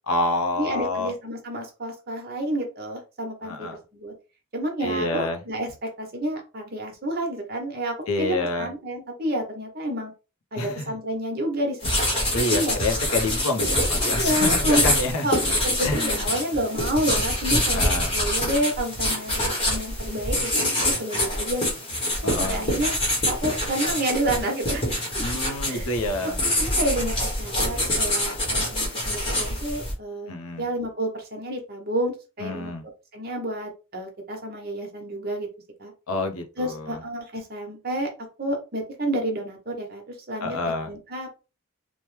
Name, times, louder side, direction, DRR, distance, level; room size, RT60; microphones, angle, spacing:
voice 1, 0.1-1.1 3.4-3.8 4.8-5.4 8.1-8.7 10.6-10.9 12.3-15.3 15.8-16.3 17.7-18.1 22.2-22.6 25.2-26.4 30.3-30.7 32.4-32.8 36.1-36.9 40.4-40.9, left 2 dB, 80° left, 6 dB, 0.6 m, -27 dB
voice 2, 0.6-3.7 3.9-4.1 4.5-10.1 10.5-12.8 14.0-14.8 15.2-15.4 15.6-21.6 22.2-23.0 23.3-24.8 25.1-25.2 25.7-25.9 26.2-32.7 33.1-35.5 35.8-35.9 36.6-38.1 38.4-41.4, right 1 dB, 45° right, 1 dB, 0.9 m, -29 dB
sound 1, 11.8-29.9, left 1 dB, 25° left, 0.9 m, -25 dB
3.0 x 2.1 x 3.1 m, 0.30 s
head